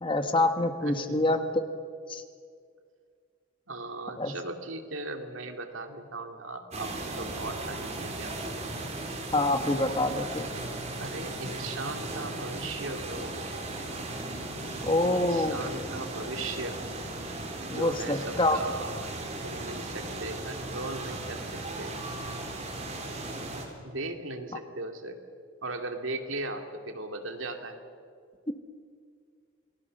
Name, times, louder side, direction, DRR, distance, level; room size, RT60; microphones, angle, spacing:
voice 1, 0.0-1.6 2.1-2.2 4.2-4.3 9.3-10.5 14.8-15.6 17.7-18.6 28.5-28.6, left 2 dB, 25° left, 7 dB, 1.4 m, -26 dB
voice 2, 0.8-1.4 3.7-8.4 11.0-13.4 15.1-16.8 17.7-21.4 21.8-22.0 23.8-25.2 25.6-27.8, right 2 dB, 80° right, 5 dB, 2.6 m, -38 dB
sound 1, 6.7-23.6, right 2 dB, 35° right, 3.8 m, -37 dB
28.0 x 19.5 x 6.7 m, 2.1 s
head